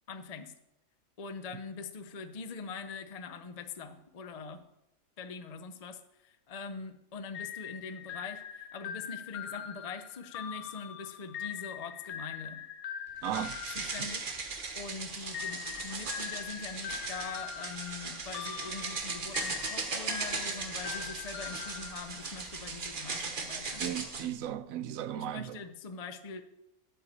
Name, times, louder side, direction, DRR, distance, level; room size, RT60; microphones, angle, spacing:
voice 1, 0.1-0.5 1.2-4.6 5.2-12.6 13.7-14.3 14.8-23.9 24.2-24.3 25.1-26.4, left 5 dB, 45° left, 0.5 m, -43 dB
sound 1, 7.3-14.8 15.3-22.6, left 9 dB, 85° left, 1.1 m, -42 dB
sound 2, 13.2-24.3, right 4 dB, 40° right, 1.1 m, -38 dB
voice 2, 13.2-13.6 14.0-14.1 23.8-25.6, right 11 dB, 75° right, 1.0 m, -36 dB
8.4 x 5.9 x 7.9 m
omnidirectional pair, 1.5 m